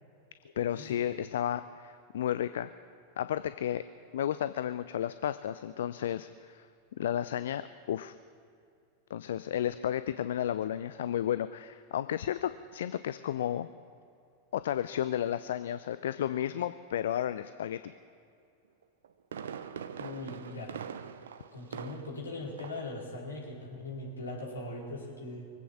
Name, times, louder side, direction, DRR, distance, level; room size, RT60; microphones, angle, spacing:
voice 1, 0.6-2.7 3.2-3.8 4.1-6.7 6.9-8.1 9.1-13.7 14.5-17.9, left 10 dB, 60° left, 13 dB, 0.4 m, -32 dB
Fireworks, 18.8-22.3 22.6-23.0 23.3-23.4, right 7 dB, 65° right, 0.7 m, -43 dB
voice 2, 20.0-20.7 21.5-25.4, left 2 dB, 75° left, -4 dB, 4.6 m, -40 dB
23.0 x 8.5 x 7.2 m, 2.5 s
figure-of-eight pair, 90°, 0 cm